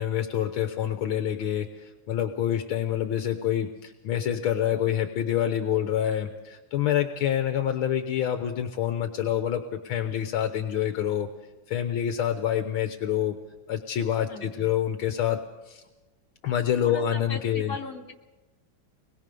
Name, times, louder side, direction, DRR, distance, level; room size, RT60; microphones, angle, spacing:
voice 1, 0.0-11.3 11.7-13.4 13.7-15.8 16.4-17.8, left 10 dB, 75° left, 7 dB, 1.7 m, -27 dB
voice 2, 14.3-14.7 16.8-18.1, left 3 dB, 40° left, 2 dB, 3.0 m, -38 dB
24.0 x 21.0 x 5.4 m, 1.1 s
omnidirectional pair, 2.3 m